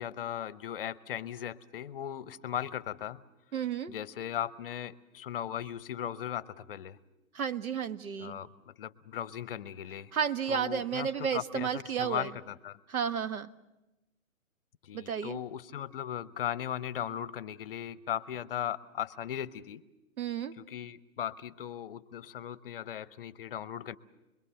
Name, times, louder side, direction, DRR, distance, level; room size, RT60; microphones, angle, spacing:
voice 1, 0.0-3.2 3.9-7.0 8.2-10.1 10.5-12.8 14.8-19.8 20.6-24.0, left 10 dB, 40° left, 17 dB, 0.7 m, -38 dB
voice 2, 3.5-3.9 7.3-8.4 10.1-12.3 12.9-13.5 14.9-15.4 20.2-20.5, right 7 dB, 80° right, 12 dB, 1.2 m, -32 dB
25.5 x 22.0 x 6.9 m, 0.98 s
hypercardioid pair, 145°, 42 cm